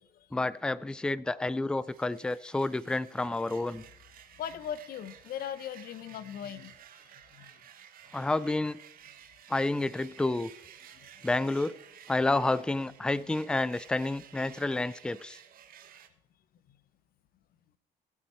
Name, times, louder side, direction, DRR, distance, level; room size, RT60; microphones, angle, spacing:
voice 1, 0.3-3.8 8.1-8.8 9.5-10.5 11.2-11.7 12.1-15.4, left 2 dB, 5° left, 19 dB, 0.4 m, -29 dB
sound 1, 1.8-16.1, right 9 dB, 60° right, 1.5 m, -54 dB
voice 2, 4.4-6.7 7.3-7.5, left 9 dB, 60° left, 16 dB, 0.8 m, -38 dB
17.5 x 8.5 x 4.4 m, 0.78 s
cardioid pair, 110°, 17 cm